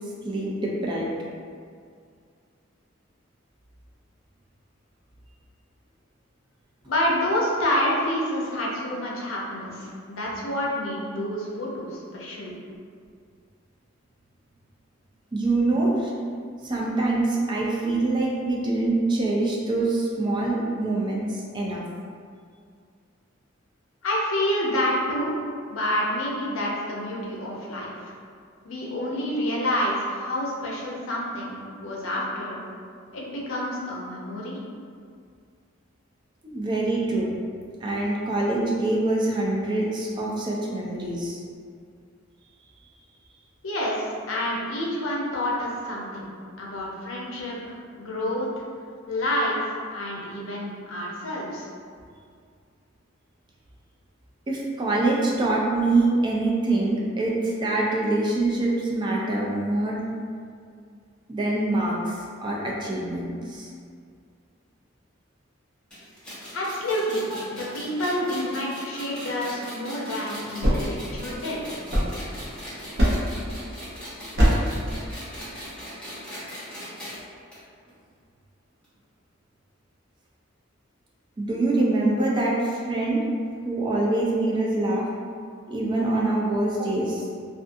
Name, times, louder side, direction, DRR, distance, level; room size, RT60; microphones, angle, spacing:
voice 1, 0.2-1.1 15.3-16.1 16.6-21.8 36.4-37.3 37.8-41.4 54.5-60.0 61.3-63.7 67.3-67.4 81.4-83.2 83.7-85.1 85.7-87.3, right 2 dB, 20° right, -4 dB, 0.3 m, -25 dB
voice 2, 6.8-12.5 24.0-25.3 25.7-28.1 28.6-32.6 33.1-34.6 43.6-46.3 46.6-48.5 49.1-51.7 66.5-67.3 67.5-71.6, left 1 dB, 75° left, -4 dB, 0.5 m, -28 dB
sound 1, 65.9-77.2 77.5-77.6 77.9-78.0 78.8-78.9, equal, 5° left, 0.7 m, -39 dB
sound 2, 70.4-72.6 73.0-73.5 74.4-74.8, equal, 50° right, 0.6 m, -23 dB
2.5 x 2.4 x 2.5 m, 2.2 s
head